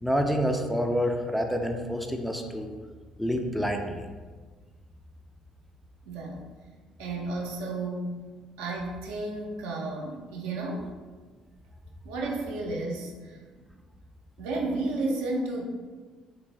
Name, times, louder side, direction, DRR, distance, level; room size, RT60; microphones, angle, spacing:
voice 1, 0.0-2.8 3.2-4.1, equal, ahead, 3 dB, 0.3 m, -28 dB
voice 2, 6.1-6.4 7.0-8.1 8.6-10.9 12.0-13.4 14.4-15.6, right 2 dB, 65° right, -1 dB, 0.5 m, -32 dB
3.1 x 2.6 x 3.0 m, 1.4 s
figure-of-eight pair, 45°, 3 cm